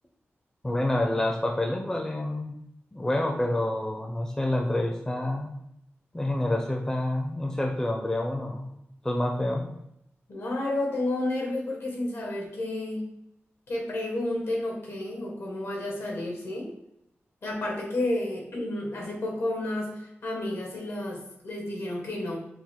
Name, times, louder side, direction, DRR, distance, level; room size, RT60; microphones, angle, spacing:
voice 1, 0.6-2.6 2.9-5.5 6.1-8.7 9.0-9.7, left 1 dB, 15° left, 2 dB, 0.5 m, -28 dB
voice 2, 10.3-13.0 13.7-16.7 17.4-22.4, left 1 dB, 70° left, -1 dB, 1.5 m, -31 dB
5.8 x 2.4 x 3.6 m, 0.79 s
wide cardioid pair, 110°, 4 cm